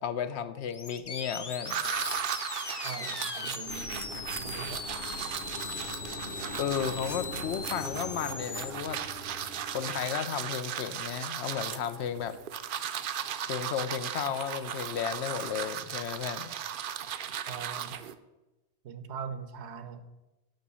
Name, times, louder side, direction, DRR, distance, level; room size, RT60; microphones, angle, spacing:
voice 1, 0.0-1.8 6.6-9.0 9.7-12.4 13.5-16.5, left 8 dB, 80° left, 11 dB, 0.9 m, -33 dB
sound 1, 0.7-8.7, left 5 dB, 35° left, 0.4 m, -40 dB
sound 2, 1.7-18.1, right 9 dB, 60° right, 0.6 m, -37 dB
voice 2, 2.8-3.9 4.3-4.9 17.5-18.0 18.8-20.0, right 6 dB, 80° right, 11 dB, 1.0 m, -41 dB
sound 3, 3.7-10.0, left 1 dB, 60° left, 1.3 m, -43 dB
7.8 x 6.1 x 6.8 m, 1.1 s
omnidirectional pair, 1.1 m